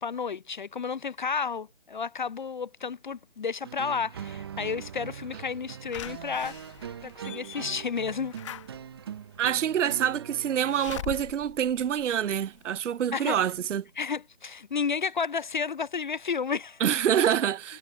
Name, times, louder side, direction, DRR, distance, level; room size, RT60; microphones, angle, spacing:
voice 1, 0.0-6.5 7.0-8.3 13.1-13.4 14.0-16.8, left 5 dB, 40° left, 0.5 m, -32 dB
sound 1, 3.6-11.0, right 8 dB, 20° right, 0.7 m, -42 dB
Slam / Alarm, 5.9-12.7 13.2-13.3 13.5-13.6, left 12 dB, 25° left, 1.2 m, -43 dB
voice 2, 9.4-13.8 16.8-17.8, right 9 dB, 75° right, 0.6 m, -26 dB
figure-of-eight pair, 150°, 36 cm